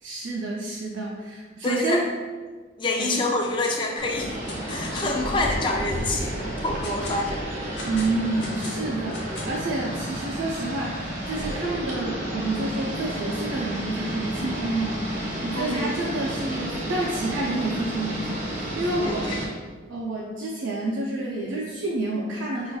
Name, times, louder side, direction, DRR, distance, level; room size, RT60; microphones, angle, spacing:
voice 1, 0.0-2.1 3.0-3.1 7.8-15.0 15.4-19.3 19.9-22.8, right 2 dB, 80° right, -4 dB, 0.5 m, -29 dB
voice 2, 1.6-2.0 2.8-4.4 4.7-7.5 15.5-15.9 19.0-19.4, left 2 dB, 25° left, 1 dB, 0.4 m, -27 dB
sound 1, 3.4-3.8 4.1-5.2 5.7-5.8 6.3-7.2 7.8-9.7, left 1 dB, 60° left, 0.8 m, -38 dB
sound 2, 4.0-19.4, right 1 dB, 40° right, 0.7 m, -31 dB
5.2 x 2.5 x 2.3 m, 1.4 s
head